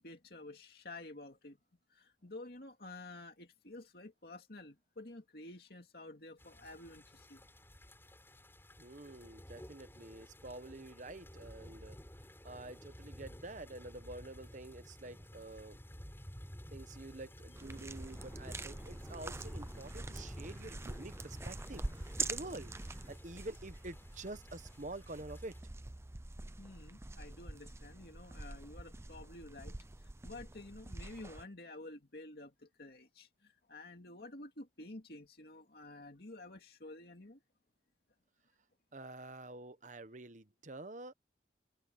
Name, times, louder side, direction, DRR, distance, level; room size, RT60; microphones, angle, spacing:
voice 1, 0.0-1.6 1.9-7.5 26.6-37.4, left 2 dB, 60° left, 2.3 m, -51 dB
sound 1, 6.4-25.6, equal, 15° left, 6.9 m, -53 dB
voice 2, 8.8-12.0 12.4-15.8 16.7-25.6 38.9-41.1, right 2 dB, 45° right, 1.2 m, -48 dB
sound 2, 17.6-31.4, right 2 dB, 15° right, 0.5 m, -45 dB
head